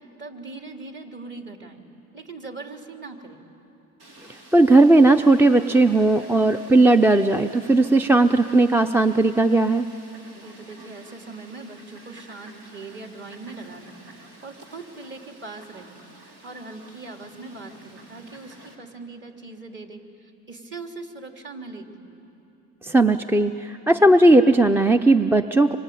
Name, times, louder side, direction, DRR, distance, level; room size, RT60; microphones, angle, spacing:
voice 1, 0.2-1.8 2.1-3.4 10.3-16.0 16.4-22.1, right 3 dB, 35° right, 3 dB, 3.0 m, -40 dB
Fowl, 4.0-18.8, right 2 dB, 85° right, 4.2 m, -49 dB
voice 2, 4.5-9.9 22.8-25.8, right 2 dB, 5° right, 9 dB, 0.5 m, -17 dB
25.5 x 25.0 x 9.3 m, 2.9 s
cardioid pair, 105°, 32 cm